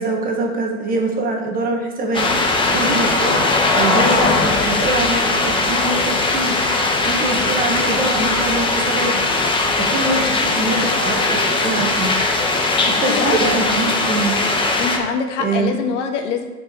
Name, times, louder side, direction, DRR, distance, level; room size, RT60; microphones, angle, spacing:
voice 1, 0.0-3.4 3.7-6.6 7.0-9.1 9.9-12.1 13.0-14.3 15.4-15.8, right 2 dB, 20° right, 2 dB, 1.2 m, -23 dB
sound 1, 2.1-15.0, left 2 dB, 10° left, 1.0 m, -19 dB
voice 2, 10.1-10.4 13.0-13.8 14.8-16.4, left 6 dB, 60° left, 4 dB, 1.4 m, -25 dB
7.3 x 4.7 x 6.0 m, 1.1 s
hypercardioid pair, 130°, 40 cm